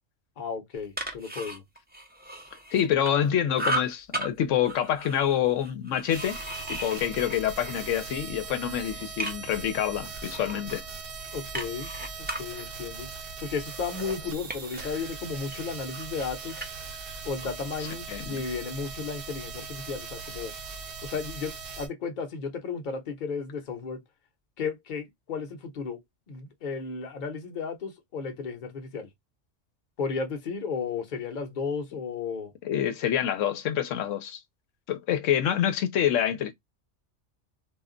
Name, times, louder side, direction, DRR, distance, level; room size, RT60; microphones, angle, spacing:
voice 1, 0.4-1.6 11.3-11.9 12.2-13.1 13.4-16.7 17.2-20.5 21.0-24.0 24.6-26.0 26.3-29.1 30.0-32.5, left 5 dB, 45° left, 0.8 m, -34 dB
sound 1, 0.7-3.3 3.5-4.3 4.6-8.2 8.6-9.6 10.1-15.1 15.4-18.0, right 1 dB, 15° right, 0.4 m, -37 dB
voice 2, 2.7-6.4 6.7-10.8 18.1-18.4 32.6-34.4 34.9-36.5, left 10 dB, 85° left, 1.0 m, -27 dB
sound 2, 6.1-21.9, right 5 dB, 55° right, 0.8 m, -40 dB
2.4 x 2.2 x 3.7 m
omnidirectional pair, 1.3 m